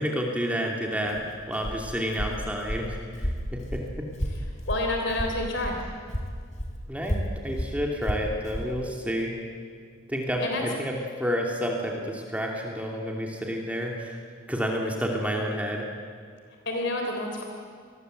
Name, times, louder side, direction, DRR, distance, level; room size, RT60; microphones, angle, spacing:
voice 1, 0.0-4.1 6.9-9.4 10.1-14.2 14.5-15.9, equal, 5° right, 0 dB, 2.8 m, -30 dB
Walk footsteps, 1.0-5.8 6.1-8.7, equal, 35° left, 3.3 m, -32 dB
voice 2, 4.7-5.7 10.4-10.6 16.6-17.4, left 2 dB, 55° left, 2 dB, 3.5 m, -28 dB
27.0 x 20.5 x 8.1 m, 2.1 s
head